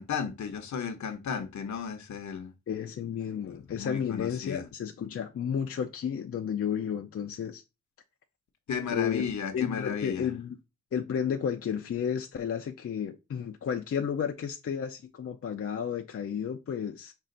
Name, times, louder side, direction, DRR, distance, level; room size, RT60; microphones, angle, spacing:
voice 1, 0.0-2.5 3.5-4.7 8.7-10.3, left 6 dB, 65° left, 0.9 m, -34 dB
voice 2, 2.7-7.6 8.9-9.3 9.5-10.6 10.9-17.1, left 8 dB, 50° left, 0.5 m, -32 dB
5.5 x 2.5 x 3.8 m
wide cardioid pair, 110°, 31 cm